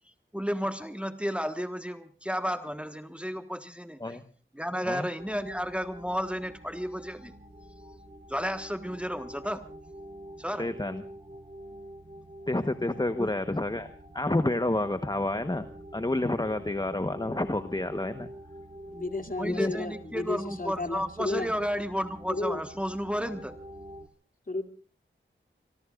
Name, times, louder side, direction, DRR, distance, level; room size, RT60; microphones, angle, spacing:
voice 1, 0.3-4.2 4.5-7.3 8.3-9.6 10.4-10.7 13.2-13.3 19.4-23.6, equal, 5° right, 8 dB, 1.4 m, -32 dB
sound 1, 5.2-24.1, right 1 dB, 25° right, 1.4 m, -47 dB
voice 2, 10.6-11.0 12.5-13.9 14.1-15.7 15.9-18.3 19.4-19.7, left 2 dB, 20° left, 10 dB, 1.1 m, -29 dB
voice 3, 18.9-21.5 22.3-22.7 24.5-24.6, left 2 dB, 40° left, 5 dB, 2.7 m, -33 dB
25.0 x 22.5 x 2.5 m, 0.41 s
wide cardioid pair, 55°, 21 cm